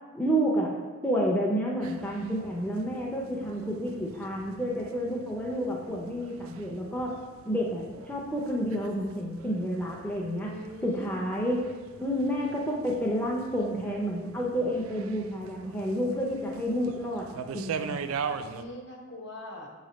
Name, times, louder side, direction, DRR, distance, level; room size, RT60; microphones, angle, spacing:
voice 1, 0.1-0.8 1.0-7.2 7.5-10.5 10.8-11.7 12.0-18.0, equal, 5° left, -3 dB, 0.6 m, -30 dB
sound 1, 1.8-18.6, right 6 dB, 85° right, 0.3 m, -42 dB
voice 2, 3.2-3.5 10.4-11.2 18.3-19.7, left 1 dB, 55° left, 0 dB, 1.0 m, -43 dB
6.5 x 3.2 x 5.0 m, 1.4 s
head